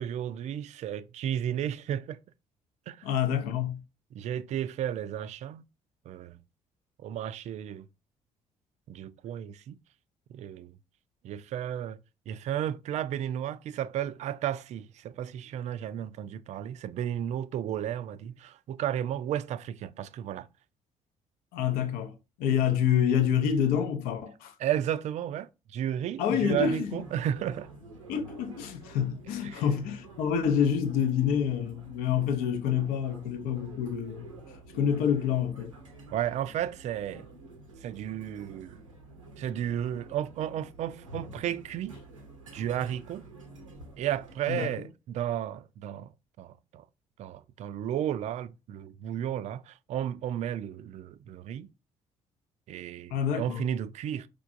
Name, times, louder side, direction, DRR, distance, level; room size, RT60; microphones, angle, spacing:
voice 1, 0.0-2.2 2.9-3.1 4.1-5.6 6.1-6.4 7.0-7.9 8.9-9.8 10.3-10.7 11.2-12.0 12.3-20.5 24.6-27.7 29.4-29.6 36.1-37.3 37.8-38.8 39.4-42.0 42.5-43.2 44.0-46.1 46.4-46.8 47.2-51.7 52.7-54.3, right 10 dB, 45° right, 0.4 m, -33 dB
voice 2, 3.0-3.8 21.5-24.6 26.2-27.0 28.1-34.4 34.7-35.7 44.5-44.9 53.1-53.7, left 8 dB, 65° left, 0.6 m, -27 dB
sound 1, 26.3-44.4, right 1 dB, 85° right, 0.6 m, -49 dB
4.9 x 3.3 x 2.5 m
figure-of-eight pair, 45°, 16 cm